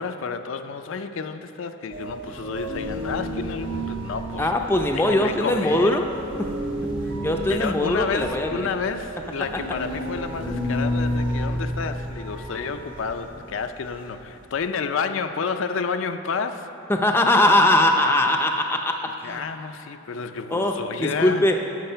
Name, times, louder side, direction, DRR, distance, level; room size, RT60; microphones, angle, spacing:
voice 1, 0.0-4.5 4.9-6.0 7.4-16.7 19.2-21.4, left 5 dB, 70° left, 8 dB, 0.4 m, -30 dB
sound 1, 1.9-14.7, equal, 60° right, 1.2 m, -31 dB
voice 2, 4.4-6.1 6.4-6.5 7.2-8.7 16.9-19.4 20.5-21.6, left 1 dB, 10° left, 3 dB, 0.5 m, -21 dB
11.5 x 7.0 x 5.5 m, 2.8 s
head